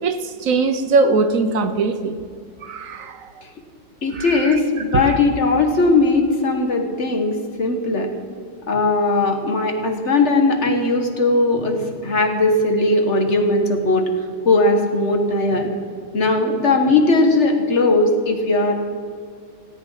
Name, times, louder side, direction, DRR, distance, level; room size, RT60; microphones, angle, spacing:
voice 1, 0.0-2.2 2.6-3.3 4.1-4.6 4.9-5.1, right 3 dB, 65° right, 10 dB, 1.1 m, -21 dB
voice 2, 4.0-8.1 8.7-14.0 14.4-15.7 16.1-18.7, left 2 dB, 45° left, 4 dB, 1.5 m, -18 dB
17.0 x 8.9 x 5.5 m, 2.2 s
omnidirectional pair, 1.7 m